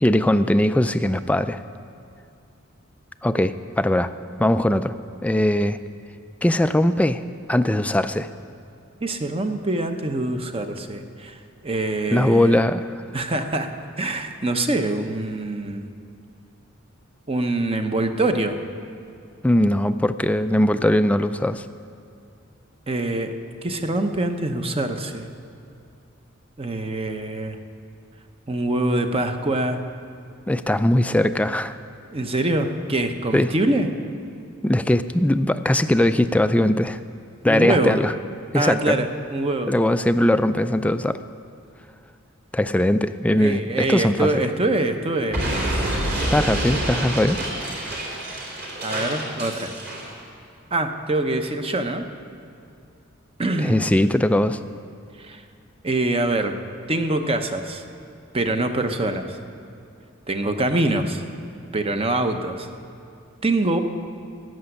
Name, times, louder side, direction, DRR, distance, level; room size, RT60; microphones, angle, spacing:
voice 1, 0.0-1.6 3.2-4.1 4.4-5.8 6.4-7.2 7.5-8.3 12.1-13.0 19.4-21.7 30.5-31.8 33.3-33.5 34.6-37.0 37.4-38.1 38.5-39.0 39.7-41.2 42.5-44.3 46.3-47.4 53.6-54.6, left 1 dB, 5° left, 10 dB, 0.3 m, -20 dB
voice 2, 9.0-11.4 11.6-12.6 13.1-13.7 14.0-15.9 17.3-18.6 22.9-23.3 23.6-25.3 26.6-27.6 28.5-29.8 32.1-33.9 37.5-38.0 38.5-39.7 43.4-45.4 48.8-49.7 50.7-52.0 53.4-53.9 55.2-55.4 55.8-56.5 56.9-57.8 58.3-59.4 60.3-61.2 61.7-62.7 63.4-63.8, right 2 dB, 25° right, 6 dB, 0.8 m, -24 dB
Explosion, 45.3-50.1, right 1 dB, 45° right, 3.4 m, -27 dB
14.0 x 7.9 x 9.7 m, 2.5 s
head